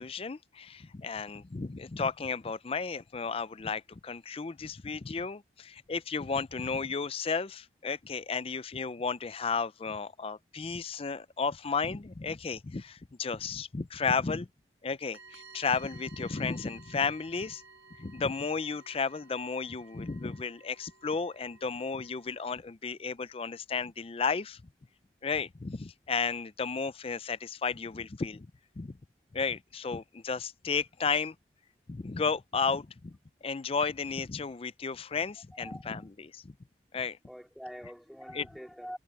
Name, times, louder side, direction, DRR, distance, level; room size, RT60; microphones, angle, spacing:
voice 1, 0.0-14.5 14.8-17.6 18.0-24.6 25.2-28.5 28.8-29.0 29.3-31.4 31.9-36.5 36.9-37.2 38.3-38.5, left 5 dB, 30° left, 0.5 m, -33 dB
sound 1, 15.1-22.5, right 4 dB, 75° right, 1.9 m, -55 dB
voice 2, 35.5-36.1 37.2-39.0, equal, ahead, 3.2 m, -45 dB
head